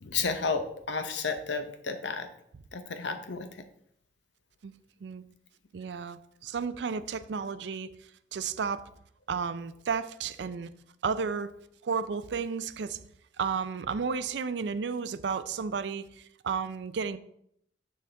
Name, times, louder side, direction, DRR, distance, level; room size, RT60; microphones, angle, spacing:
voice 1, 0.0-2.3 2.7-3.5, left 5 dB, 85° left, 8 dB, 0.8 m, -32 dB
voice 2, 5.7-7.9 8.3-8.9 9.3-10.7 11.0-11.5 11.8-13.0 13.4-17.2, right 5 dB, 75° right, 14 dB, 0.4 m, -32 dB
7.0 x 6.3 x 3.3 m, 0.71 s
head